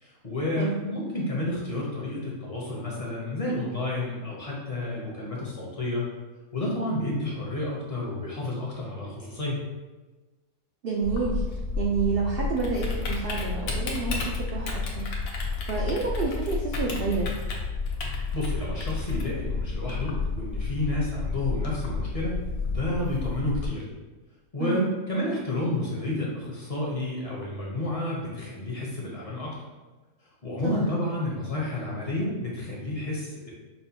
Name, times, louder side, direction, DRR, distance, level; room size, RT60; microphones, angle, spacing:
voice 1, 0.0-6.1 6.5-9.6 18.3-22.4 22.6-23.8 24.5-29.5 30.4-33.5, left 1 dB, 40° left, -4 dB, 0.6 m, -30 dB
voice 2, 10.8-15.1 15.6-17.4 24.6-24.9 30.6-30.8, right 4 dB, 75° right, -2 dB, 0.5 m, -29 dB
Typing, 11.0-23.7, left 4 dB, 75° left, 1.1 m, -31 dB
5.5 x 2.2 x 2.7 m, 1.2 s
omnidirectional pair, 1.5 m